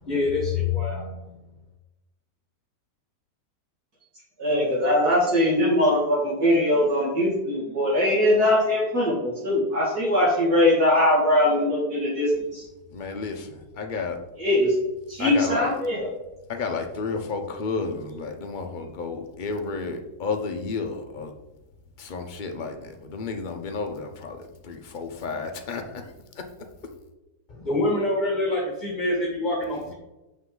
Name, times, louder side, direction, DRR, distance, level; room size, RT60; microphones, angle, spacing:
voice 1, 0.0-1.2 27.5-29.9, left 2 dB, 30° left, -1 dB, 1.2 m, -25 dB
voice 2, 4.4-12.6 14.4-14.8 15.1-16.1, left 1 dB, 60° right, -7 dB, 2.6 m, -21 dB
voice 3, 12.9-14.2 15.2-15.7 16.5-21.3 22.0-24.4 24.6-26.0 29.9-30.0, left 4 dB, 45° left, 5 dB, 0.6 m, -31 dB
7.3 x 5.9 x 3.8 m, 1.0 s
omnidirectional pair, 1.9 m